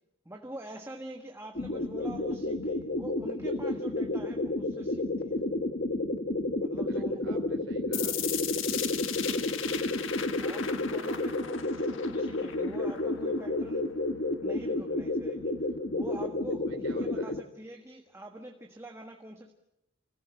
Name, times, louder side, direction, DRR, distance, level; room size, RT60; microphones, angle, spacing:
voice 1, 0.2-5.4 6.6-7.4 9.4-9.6 10.4-13.9 14.4-19.5, right 1 dB, 15° right, 3 dB, 1.5 m, -45 dB
sound 1, 1.5-17.4, left 2 dB, 50° left, 1.2 m, -31 dB
voice 2, 6.9-8.2 9.5-10.3 16.7-17.4, right 2 dB, 85° right, 2 dB, 3.7 m, -52 dB
sound 2, 7.9-13.9, left 10 dB, 70° left, 1.5 m, -37 dB
29.5 x 15.5 x 7.8 m, 0.86 s
head